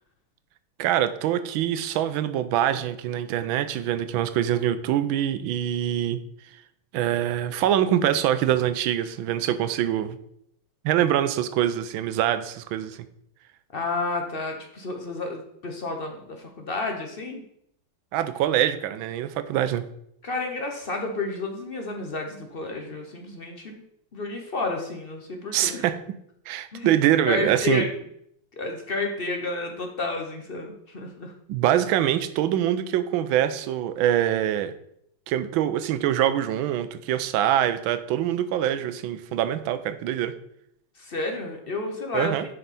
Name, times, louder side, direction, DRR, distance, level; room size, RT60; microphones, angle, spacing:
voice 1, 0.8-6.2 6.9-10.2 10.8-13.0 18.1-19.8 25.5-26.0 26.5-27.8 31.5-34.7 35.3-40.3 42.1-42.5, right 11 dB, 85° right, 11 dB, 1.4 m, -24 dB
voice 2, 13.7-17.4 20.2-23.8 24.1-25.9 26.7-26.9 27.3-27.9 28.5-31.3 40.9-42.3, left 3 dB, 55° left, 3 dB, 0.6 m, -31 dB
7.6 x 5.5 x 4.1 m, 0.73 s
omnidirectional pair, 2.2 m